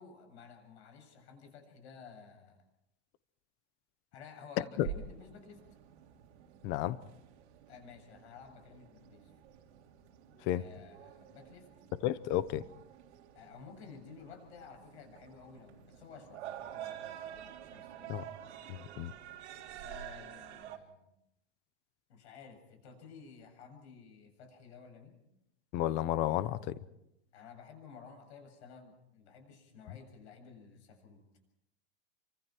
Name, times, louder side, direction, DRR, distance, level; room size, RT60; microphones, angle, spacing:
voice 1, 0.0-2.6 4.1-5.6 7.7-9.3 10.5-11.7 13.3-17.4 17.6-18.3 19.8-21.1 22.1-25.2 27.3-31.2, left 6 dB, 70° left, 7.8 m, -53 dB
sound 1, 4.8-20.8, right 10 dB, 70° right, 3.1 m, -49 dB
voice 2, 6.6-7.0 10.4-10.6 12.0-12.6 18.1-18.2 18.7-19.1 25.7-26.7, left 13 dB, 30° left, 0.9 m, -32 dB
28.5 x 25.0 x 4.6 m
supercardioid pair, 155°, 35 cm